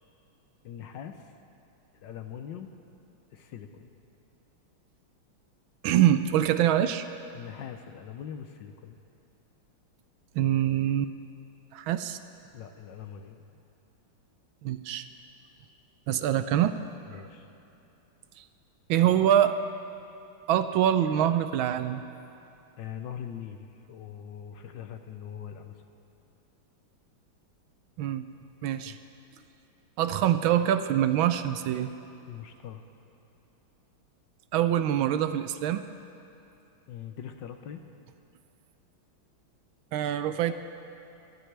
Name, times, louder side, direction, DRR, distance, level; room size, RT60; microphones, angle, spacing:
voice 1, 0.6-1.2 2.0-2.7 3.3-3.9 7.3-9.0 12.5-13.4 17.1-17.5 22.8-25.7 28.8-29.0 32.2-32.8 36.9-37.8, left 9 dB, 70° left, 7 dB, 1.2 m, -42 dB
voice 2, 5.8-7.0 10.3-11.1 11.7-12.2 14.6-15.1 16.1-16.7 18.4-18.5 18.9-19.5 20.5-22.0 28.0-28.2 28.6-29.0 30.0-31.9 34.5-35.8 39.9-40.5, right 11 dB, 75° right, 11 dB, 1.3 m, -24 dB
27.0 x 12.5 x 3.3 m, 2.9 s
omnidirectional pair, 2.3 m